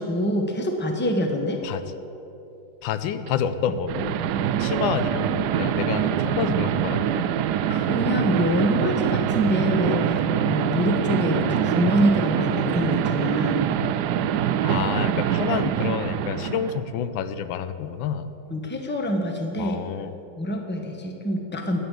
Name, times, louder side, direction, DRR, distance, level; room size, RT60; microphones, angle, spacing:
voice 1, 0.0-1.6 7.7-13.6 18.5-19.8 20.4-21.9, equal, 5° left, 3 dB, 0.9 m, -25 dB
voice 2, 2.8-7.3 11.4-11.5 14.6-18.3 19.6-20.1, left 8 dB, 90° left, 12 dB, 1.4 m, -29 dB
sound 1, 3.3-3.4 3.9-16.9, right 10 dB, 75° right, 1.0 m, -24 dB
12.0 x 8.6 x 8.3 m, 3.0 s
omnidirectional pair, 2.1 m